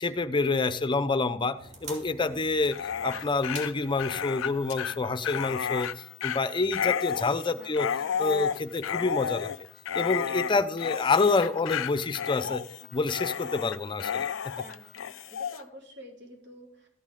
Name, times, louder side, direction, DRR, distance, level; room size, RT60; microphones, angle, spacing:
voice 1, 0.0-1.6 1.8-5.9 6.2-7.9 8.2-9.5 9.9-12.6 12.9-14.3, left 3 dB, 25° left, 11 dB, 0.6 m, -27 dB
sound 1, 1.6-6.1 6.4-6.5, right 2 dB, 35° right, 2.9 m, -48 dB
Dog, 2.6-15.6, left 8 dB, 85° left, 0.4 m, -32 dB
voice 2, 7.1-7.7 8.0-8.3 14.6-16.9, left 1 dB, 60° right, -1 dB, 3.5 m, -49 dB
13.5 x 8.7 x 3.7 m, 0.75 s
head